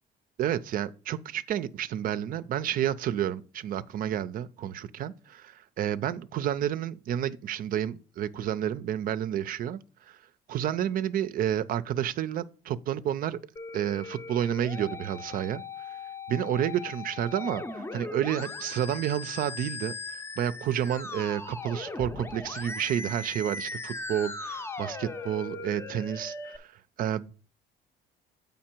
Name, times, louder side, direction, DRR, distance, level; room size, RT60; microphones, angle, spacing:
voice 1, 0.4-9.8 10.1-10.2 10.5-13.4 13.7-15.6 16.3-19.9 20.4-26.7 27.0-27.3, right 10 dB, 55° right, 0.5 m, -30 dB
Musical instrument, 13.6-26.6, left 3 dB, 15° left, 0.6 m, -39 dB
7.5 x 5.3 x 4.4 m
cardioid pair, 110°, 17 cm